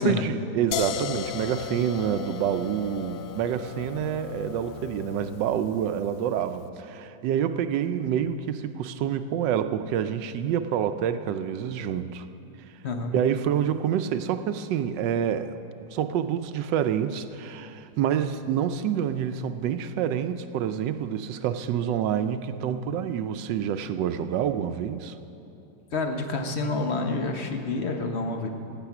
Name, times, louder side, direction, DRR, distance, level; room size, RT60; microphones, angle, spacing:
voice 1, 0.0-12.3 13.1-25.1, right 9 dB, 80° right, 10 dB, 1.2 m, -27 dB
sound 1, 0.7-6.5, left 9 dB, 70° left, 1.0 m, -36 dB
voice 2, 25.9-28.5, left 3 dB, 45° left, 5 dB, 0.9 m, -28 dB
17.5 x 8.9 x 5.9 m, 2.9 s
omnidirectional pair, 1.9 m